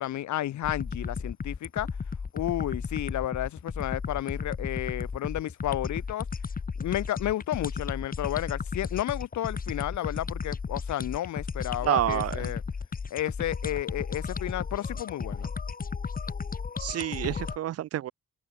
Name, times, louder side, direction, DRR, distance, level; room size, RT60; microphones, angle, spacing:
voice 1, 0.0-1.9 2.3-6.2 6.8-12.6 13.1-15.5, left 13 dB, 70° left, 1.1 m, -32 dB
sound 1, 0.6-17.6, left 5 dB, 30° left, 1.4 m, -34 dB
voice 2, 11.8-12.5 16.8-18.1, right 12 dB, 55° right, 0.5 m, -28 dB
cardioid pair, 90°, 30 cm